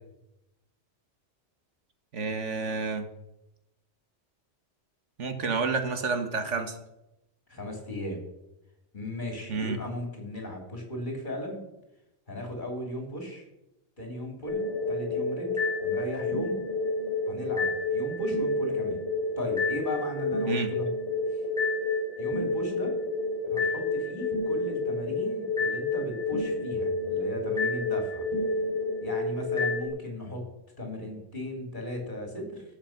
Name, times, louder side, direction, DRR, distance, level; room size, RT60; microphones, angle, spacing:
voice 1, 2.1-3.1 5.2-6.8 9.5-9.8 20.4-20.7, right 4 dB, 80° right, 7 dB, 1.7 m, -29 dB
voice 2, 7.5-8.2 8.9-11.6 12.3-13.5 14.0-16.6 17.3-19.0 19.4-20.9 21.3-21.4 22.2-23.0 23.5-28.2 29.0-30.5 30.8-32.6, left 1 dB, 40° left, 2 dB, 3.2 m, -36 dB
sound 1, 14.5-29.9, left 2 dB, 25° right, 4.4 m, -29 dB
17.5 x 7.1 x 5.8 m, 0.91 s
omnidirectional pair, 1.2 m